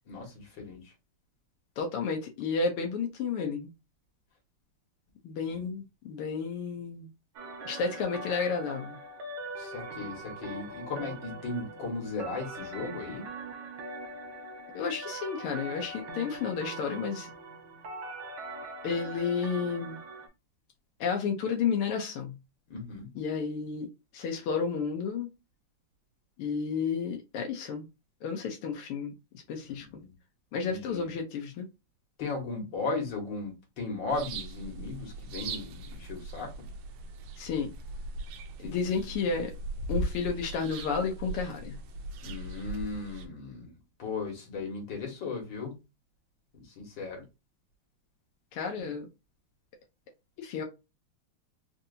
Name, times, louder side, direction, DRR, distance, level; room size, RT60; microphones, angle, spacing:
voice 1, 0.1-0.8 5.5-5.6 9.6-13.3 22.7-23.1 29.9-30.1 30.7-31.1 32.2-36.5 38.6-39.0 42.2-43.7 44.0-45.8 46.5-47.2 48.8-48.9, left 3 dB, 60° left, 2.2 m, -36 dB
voice 2, 1.8-3.7 5.2-7.1 7.6-9.0 14.7-17.3 18.8-20.0 21.0-22.4 23.1-23.9 24.1-25.3 26.4-27.9 28.2-29.1 29.5-30.0 30.5-31.7 37.4-37.7 38.6-39.5 39.9-41.8 48.5-49.1 50.4-50.6, left 5 dB, 90° left, 1.6 m, -31 dB
sound 1, 7.3-20.3, right 2 dB, 70° right, 1.8 m, -42 dB
sound 2, 34.1-43.3, right 2 dB, 90° right, 1.6 m, -39 dB
4.5 x 2.7 x 2.6 m
omnidirectional pair, 2.4 m